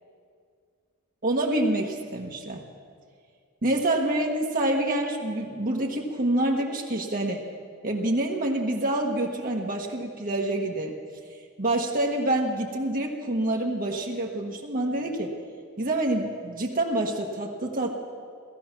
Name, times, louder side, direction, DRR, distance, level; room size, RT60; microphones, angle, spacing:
voice 1, 1.2-2.6 3.6-7.4 7.8-11.0 11.6-15.3 15.8-17.9, right 1 dB, 40° right, 0 dB, 1.2 m, -27 dB
17.0 x 14.0 x 5.9 m, 2.1 s
head